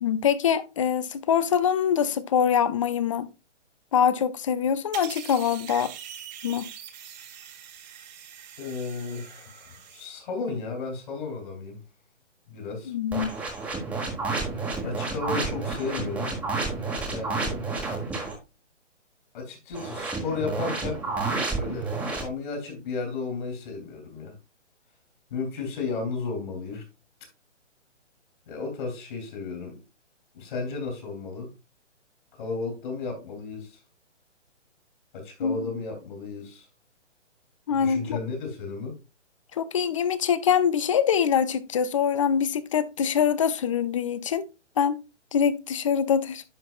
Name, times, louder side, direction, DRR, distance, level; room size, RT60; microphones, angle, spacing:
voice 1, 0.0-3.3 3.9-5.9 6.4-6.7 12.9-13.3 35.4-35.7 37.7-38.2 39.5-44.5 44.8-45.0 45.3-46.4, left 8 dB, 25° left, 0.5 m, -24 dB
sound 1, 4.9-10.1, right 9 dB, 35° right, 1.4 m, -43 dB
voice 2, 8.6-11.8 12.5-12.9 14.8-16.4 17.0-17.6 19.3-21.0 21.5-24.3 25.3-26.8 28.5-29.8 30.3-31.5 32.3-33.8 35.1-36.7 37.7-39.0, left 4 dB, 45° left, 3.6 m, -34 dB
sound 2, 13.1-18.4 19.7-22.2, right 3 dB, 5° right, 1.4 m, -30 dB
10.0 x 5.8 x 2.4 m
figure-of-eight pair, 140°, 36 cm